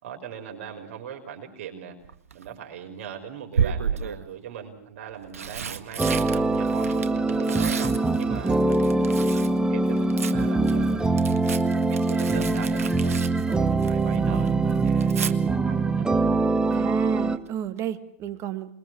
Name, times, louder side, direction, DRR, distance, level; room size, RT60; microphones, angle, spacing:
voice 1, 0.0-2.0 2.3-11.0 11.4-16.1, right 8 dB, 65° right, 4 dB, 5.5 m, -40 dB
Tearing, 2.0-2.5 3.5-4.3 5.1-9.6 9.9-14.2 14.5-15.3 17.2-17.5 17.8-17.9, right 7 dB, 85° right, 1.7 m, -32 dB
sound 1, 6.0-17.4, right 3 dB, 10° right, 1.8 m, -23 dB
sound 2, 7.1-13.1, left 6 dB, 75° left, 6.6 m, -49 dB
voice 2, 16.7-18.8, right 10 dB, 40° right, 10 dB, 2.3 m, -33 dB
27.5 x 22.5 x 6.3 m, 0.66 s
hypercardioid pair, 100°, 8 cm